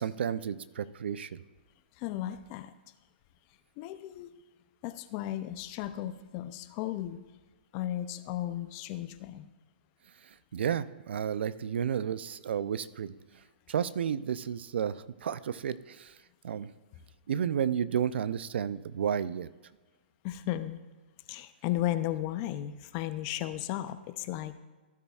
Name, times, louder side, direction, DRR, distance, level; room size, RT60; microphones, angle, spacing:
voice 1, 0.0-1.4 10.5-13.1 13.7-16.1 16.4-16.7 17.3-19.5, right 8 dB, 75° right, 17 dB, 0.4 m, -32 dB
voice 2, 2.0-2.7 3.8-4.3 4.8-7.2 7.7-9.5 20.2-20.8 21.3-24.6, left 13 dB, 30° left, 12 dB, 0.5 m, -35 dB
15.5 x 8.4 x 2.4 m, 1.3 s
hypercardioid pair, 150°, 6 cm